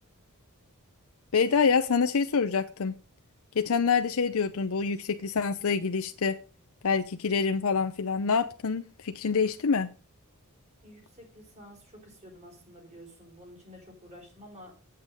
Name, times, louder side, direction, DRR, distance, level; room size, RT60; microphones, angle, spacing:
voice 1, 1.3-3.0 3.5-6.4 6.8-9.9, left 5 dB, 70° left, 0.6 m, -26 dB
voice 2, 10.8-14.8, equal, 30° right, 4.3 m, -50 dB
8.6 x 8.1 x 5.3 m
head